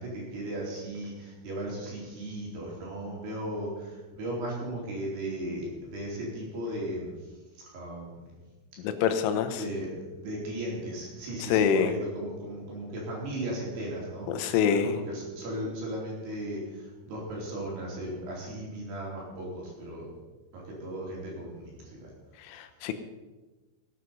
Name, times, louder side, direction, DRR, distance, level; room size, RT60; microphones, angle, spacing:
voice 1, 0.0-7.2 7.6-8.4 9.5-20.1 20.5-22.1, right 1 dB, 60° right, -3 dB, 6.0 m, -36 dB
voice 2, 8.8-9.6 11.4-11.9 14.3-14.9 22.5-22.9, left 7 dB, 90° left, 9 dB, 3.6 m, -26 dB
18.5 x 9.4 x 5.5 m, 1.2 s
omnidirectional pair, 5.4 m